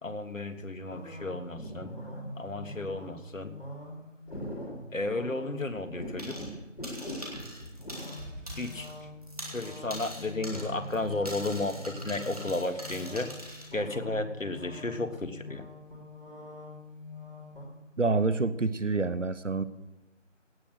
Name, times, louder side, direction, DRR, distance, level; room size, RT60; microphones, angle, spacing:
voice 1, 0.0-1.9 2.3-3.5 4.9-6.4 8.6-8.9 9.5-13.3 13.7-15.6, left 2 dB, 85° left, 8 dB, 1.7 m, -33 dB
sound 1, 0.9-17.7, left 1 dB, 45° left, 4.6 m, -43 dB
sound 2, 6.2-6.6 6.8-9.0 9.2-13.7, equal, 30° right, 2.5 m, -43 dB
Car / Engine starting / Idling, 7.8-11.2, right 1 dB, 85° right, 4.5 m, -49 dB
voice 2, 18.0-19.6, right 3 dB, 70° right, 15 dB, 1.0 m, -27 dB
17.0 x 6.4 x 7.9 m, 1.0 s
figure-of-eight pair, 180°, 38 cm